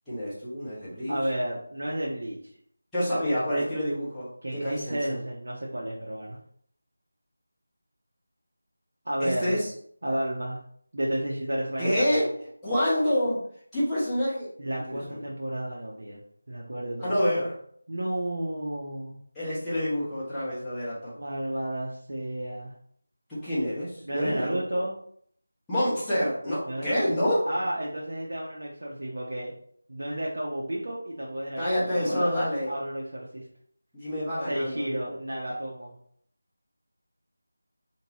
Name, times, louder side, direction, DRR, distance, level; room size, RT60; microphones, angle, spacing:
voice 1, 0.1-1.2 2.9-4.3 4.5-5.2 9.2-9.6 11.8-12.3 12.6-13.4 13.7-14.5 14.9-15.2 17.0-17.5 19.3-21.1 23.3-24.8 25.7-27.5 31.6-32.7 33.9-35.2, equal, 5° left, -14 dB, 1.2 m, -27 dB
voice 2, 1.1-2.4 4.4-6.4 9.0-9.6 10.0-10.6 10.9-12.2 14.6-16.2 16.5-17.2 17.9-19.2 21.2-22.8 24.0-25.0 26.7-26.9 27.5-29.5 29.9-33.5 34.5-35.9, right 1 dB, 65° right, -4 dB, 0.7 m, -32 dB
3.6 x 2.8 x 2.9 m, 0.63 s
figure-of-eight pair, 170°, 0 cm